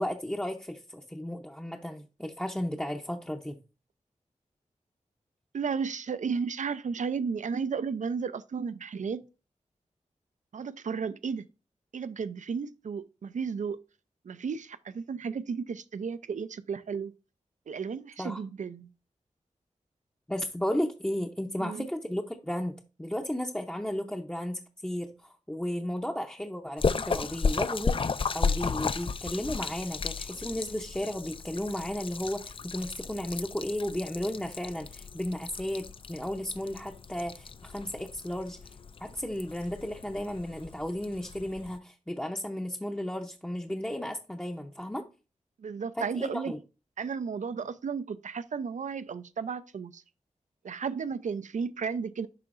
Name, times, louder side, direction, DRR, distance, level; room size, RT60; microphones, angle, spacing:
voice 1, 0.0-3.6 18.2-18.4 20.3-28.0 28.3-38.6 39.0-45.1 46.0-46.6, left 1 dB, 10° left, 0.6 m, -34 dB
voice 2, 5.5-9.2 10.5-11.5 11.9-13.8 14.2-17.1 17.7-18.9 21.6-21.9 45.6-46.5 47.0-50.0 50.6-52.3, right 5 dB, 70° right, 0.5 m, -33 dB
Splash splatter, 26.8-41.8, left 5 dB, 45° left, 0.3 m, -34 dB
11.5 x 3.8 x 2.5 m
wide cardioid pair, 100°, 13 cm